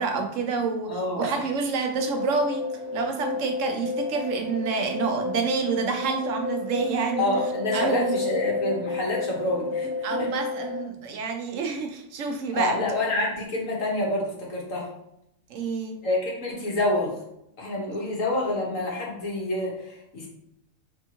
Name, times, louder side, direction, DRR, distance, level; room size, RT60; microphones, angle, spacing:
voice 1, 0.0-2.7 2.9-7.3 7.7-8.2 10.0-12.8 15.5-16.0, right 5 dB, 75° right, 4 dB, 1.0 m, -28 dB
voice 2, 0.9-1.4 7.2-9.9 10.2-10.3 12.5-14.9 16.0-17.1 17.6-20.3, left 2 dB, 80° left, -2 dB, 1.6 m, -27 dB
sound 1, 2.0-10.8, left 3 dB, 5° right, 1.0 m, -31 dB
4.5 x 3.5 x 2.9 m, 0.81 s
omnidirectional pair, 1.4 m